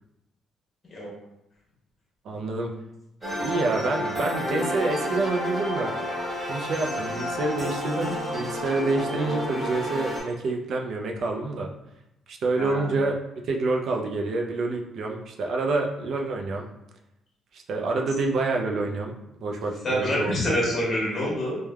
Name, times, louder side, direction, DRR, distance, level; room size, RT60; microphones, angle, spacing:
voice 1, 2.2-2.7 3.4-5.9 6.5-11.7 12.3-13.2 13.4-16.7 17.5-19.1 19.4-20.4, right 3 dB, 60° right, 2 dB, 0.4 m, -27 dB
sound 1, 3.2-10.2, equal, 15° right, 1.4 m, -30 dB
voice 2, 19.8-21.6, equal, 30° left, -5 dB, 1.1 m, -26 dB
3.2 x 2.1 x 2.3 m, 0.87 s
cardioid pair, 120°, 0 cm